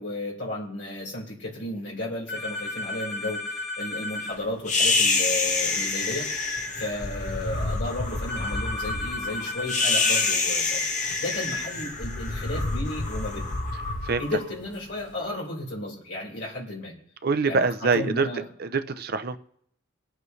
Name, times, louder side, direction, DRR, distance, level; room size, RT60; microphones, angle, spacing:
voice 1, 0.0-10.8 11.2-13.4 14.2-16.9 17.4-18.5, left 1 dB, 60° left, -3 dB, 4.8 m, -34 dB
sound 1, 2.3-4.4 8.3-10.4, left 2 dB, 10° left, 3.6 m, -33 dB
sound 2, 4.7-15.0, left 3 dB, 35° left, 1.4 m, -27 dB
voice 2, 17.2-18.3 18.6-19.4, right 4 dB, 50° right, 10 dB, 0.6 m, -24 dB
23.5 x 8.1 x 3.2 m, 0.70 s
head